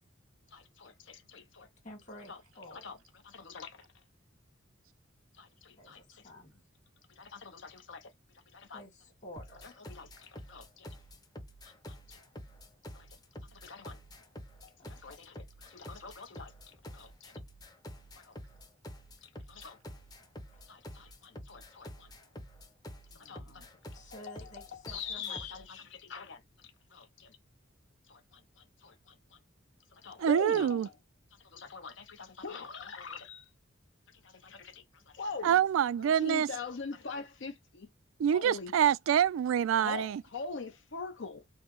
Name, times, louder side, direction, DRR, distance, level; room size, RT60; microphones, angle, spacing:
voice 1, 0.5-1.7 2.3-2.4 2.7-3.0 3.2-3.9 5.4-6.3 7.2-8.1 8.5-8.8 9.6-11.0 11.6-12.2 12.9-13.1 13.5-14.0 14.6-16.5 16.9-17.4 18.1-18.3 19.2-19.8 20.7-22.1 23.1-23.7 24.0-27.4 28.1-29.4 29.9-30.8 31.4-33.5 34.1-35.6 36.2-37.9 38.3-38.7 39.8-41.4, left 4 dB, 65° left, 0.7 m, -44 dB
voice 2, 1.8-3.0 5.8-6.6 8.7-9.8 14.8-15.2 20.5-20.6 23.9-25.6, left 1 dB, 40° left, 2.0 m, -51 dB
sound 1, 9.4-25.7, equal, 20° left, 0.7 m, -48 dB
voice 3, 30.2-30.9 35.4-36.5 38.2-40.2, right 9 dB, 85° right, 0.3 m, -26 dB
5.3 x 2.1 x 3.0 m
head